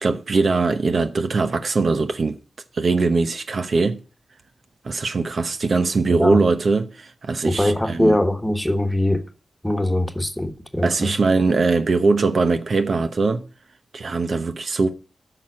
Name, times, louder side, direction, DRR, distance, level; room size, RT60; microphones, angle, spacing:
voice 1, 0.0-2.4 2.7-4.0 4.8-8.2 10.8-13.5 13.9-14.9, right 4 dB, 65° right, 0.9 m, -21 dB
voice 2, 7.4-9.2 9.6-11.1, left 1 dB, 5° left, 1.4 m, -21 dB
8.9 x 6.1 x 7.6 m
cardioid pair, 60°, 0 cm